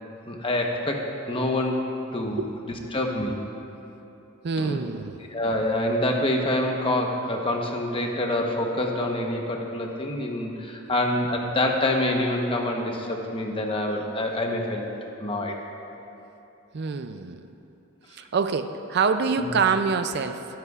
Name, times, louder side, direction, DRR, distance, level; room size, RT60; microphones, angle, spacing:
voice 1, 0.3-1.8 2.1-2.4 2.9-3.4 4.6-4.8 5.3-14.8 15.2-15.6 19.4-19.5, left 1 dB, 25° left, 1 dB, 1.0 m, -26 dB
voice 2, 4.4-5.2 10.9-11.0 16.7-17.4 18.1-20.5, right 5 dB, 55° right, 9 dB, 0.4 m, -26 dB
20.0 x 10.5 x 2.4 m, 3.0 s
head